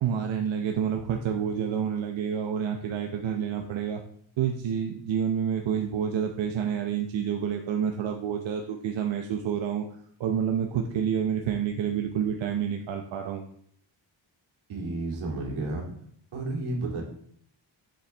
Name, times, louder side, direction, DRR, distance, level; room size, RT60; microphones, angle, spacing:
voice 1, 0.0-4.0 4.4-9.8 10.2-13.4, right 8 dB, 65° right, 3 dB, 0.8 m, -28 dB
voice 2, 14.7-15.9 16.3-17.0, right 2 dB, 85° right, -1 dB, 2.7 m, -31 dB
7.7 x 7.2 x 3.4 m, 0.64 s
wide cardioid pair, 150°, 48 cm